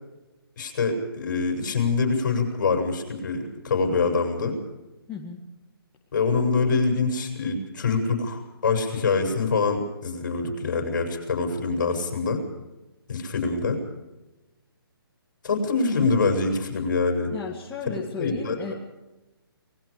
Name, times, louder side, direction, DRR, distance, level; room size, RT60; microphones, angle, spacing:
voice 1, 0.6-4.6 6.1-12.4 13.1-13.8 15.4-17.3 18.2-18.7, left 4 dB, 50° left, 4 dB, 7.2 m, -25 dB
voice 2, 5.1-5.4 17.3-18.7, left 5 dB, 10° left, -3 dB, 2.2 m, -34 dB
29.0 x 20.5 x 5.1 m, 1.0 s
hypercardioid pair, 165°, 13 cm